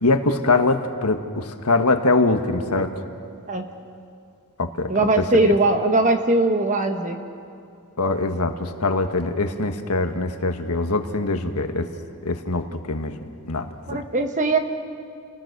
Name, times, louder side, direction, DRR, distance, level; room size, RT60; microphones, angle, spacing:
voice 1, 0.0-2.9 4.6-4.9 5.4-5.5 8.0-11.9 12.2-13.2 13.5-14.0, left 3 dB, 85° left, 6 dB, 1.5 m, -23 dB
voice 2, 4.9-7.2 13.9-14.6, right 2 dB, 35° right, 6 dB, 1.5 m, -20 dB
29.5 x 19.0 x 6.7 m, 2.4 s
head